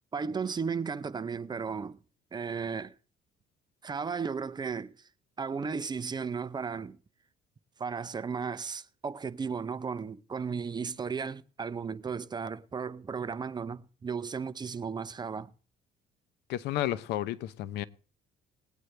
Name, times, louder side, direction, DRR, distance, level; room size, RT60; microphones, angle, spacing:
voice 1, 0.1-2.0 2.3-2.9 3.8-4.9 5.4-7.0 7.8-15.5, right 5 dB, 25° right, 0.6 m, -35 dB
voice 2, 16.5-17.8, left 13 dB, 85° left, 0.7 m, -32 dB
19.5 x 9.2 x 3.3 m
cardioid pair, 110°, 17 cm